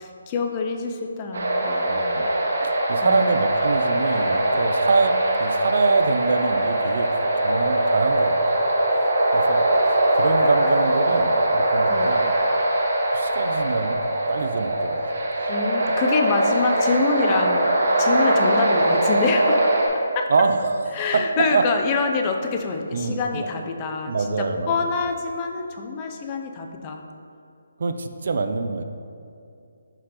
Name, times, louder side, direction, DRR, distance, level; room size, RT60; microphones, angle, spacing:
voice 1, 0.0-2.2 3.0-3.4 11.9-12.1 15.5-20.3 20.9-27.1, left 4 dB, 20° left, 4 dB, 0.3 m, -26 dB
sound 1, 1.3-19.9, right 1 dB, 75° right, 1.5 m, -21 dB
voice 2, 1.9-2.3 2.6-7.1 7.4-8.4 9.3-9.7 10.1-12.3 13.1-14.0 14.3-15.0 20.3-21.7 22.9-23.5 24.1-24.7 27.8-28.8, right 4 dB, 50° right, 8 dB, 0.4 m, -25 dB
11.0 x 3.9 x 2.9 m, 2.5 s
hypercardioid pair, 170°, 0 cm